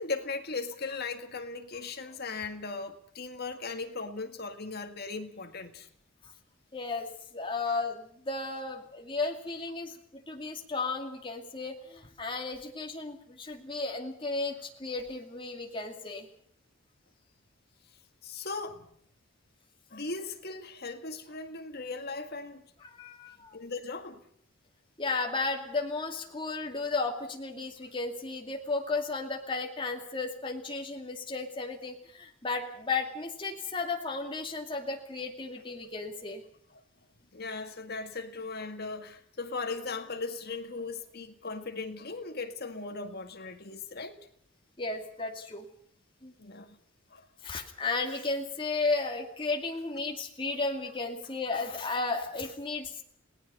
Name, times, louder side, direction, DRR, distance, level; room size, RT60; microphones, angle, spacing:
voice 1, 0.0-5.9 18.2-18.9 19.9-22.7 23.5-24.2 36.7-36.8 37.3-44.3 46.4-46.8 47.1-47.2, left 3 dB, 45° left, 1.9 m, -38 dB
voice 2, 6.7-16.3 22.8-23.6 25.0-36.4 44.8-45.7 46.2-46.3 47.4-53.0, left 3 dB, 25° left, 2.4 m, -34 dB
29.5 x 18.0 x 5.5 m
head